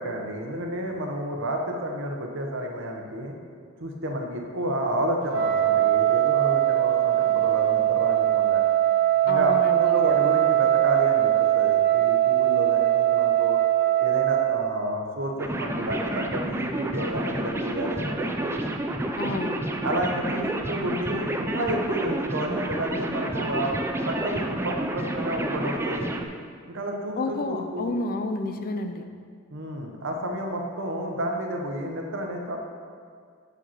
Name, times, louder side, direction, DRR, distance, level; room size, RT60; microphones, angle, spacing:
voice 1, 0.0-3.3 3.8-8.6 9.2-13.6 14.0-18.6 19.8-23.8 24.1-26.1 26.7-27.9 29.5-32.6, right 1 dB, 65° right, 2 dB, 0.9 m, -30 dB
Wind instrument woodwind instrument, 5.3-14.6, right 13 dB, 85° right, 1.4 m, -21 dB
voice 2, 9.3-10.0 19.2-19.6 27.2-29.1, left 2 dB, 45° left, 7 dB, 0.5 m, -30 dB
sound 1, 15.4-26.2, right 1 dB, 10° right, 0.4 m, -30 dB
6.6 x 5.1 x 5.6 m, 2.1 s
head